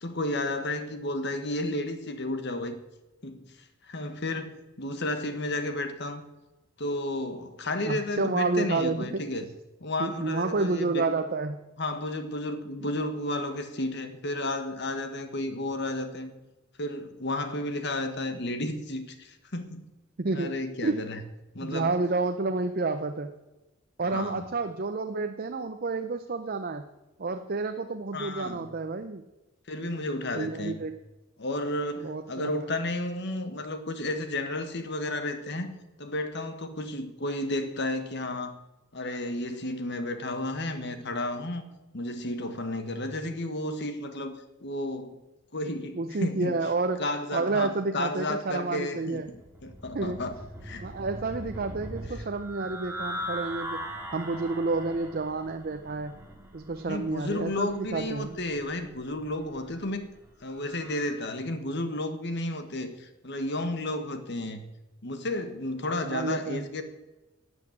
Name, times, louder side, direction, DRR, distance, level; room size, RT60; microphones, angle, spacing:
voice 1, 0.0-2.8 3.2-3.5 3.8-6.2 6.8-9.4 9.8-11.0 11.8-16.3 16.8-19.9 20.3-21.2 21.5-21.9 24.1-24.5 28.1-28.7 29.7-30.8 31.4-38.5 38.9-41.6 41.9-44.3 44.6-45.2 45.5-46.6 47.0-49.4 49.6-50.4 50.6-50.9 56.8-60.0 60.4-64.6 65.0-66.8, left 1 dB, 55° left, 8 dB, 1.4 m, -32 dB
voice 2, 7.9-9.2 10.0-11.6 12.8-12.9 20.2-20.5 20.8-21.0 21.6-23.3 24.0-26.9 27.2-29.2 30.3-30.9 32.0-32.7 45.9-47.0 47.3-49.3 49.9-50.2 50.8-53.8 54.1-56.1 56.5-58.4 66.0-66.7, right 3 dB, 45° right, 7 dB, 0.6 m, -30 dB
sound 1, 49.3-61.1, equal, 10° right, 2.1 m, -41 dB
12.5 x 8.0 x 8.7 m, 1.1 s
head